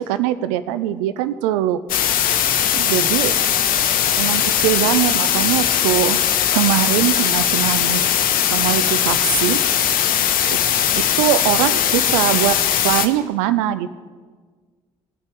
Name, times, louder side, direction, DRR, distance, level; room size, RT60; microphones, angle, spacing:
voice 1, 0.0-1.8 2.7-3.3 4.2-6.2 6.5-8.1 8.5-9.6 10.5-10.6 11.2-12.6 12.8-13.9, right 13 dB, 75° right, 13 dB, 0.4 m, -21 dB
sound 1, 1.9-13.1, left 9 dB, 60° left, 0.6 m, -19 dB
16.5 x 5.6 x 3.0 m, 1.5 s
hypercardioid pair, 45°, 17 cm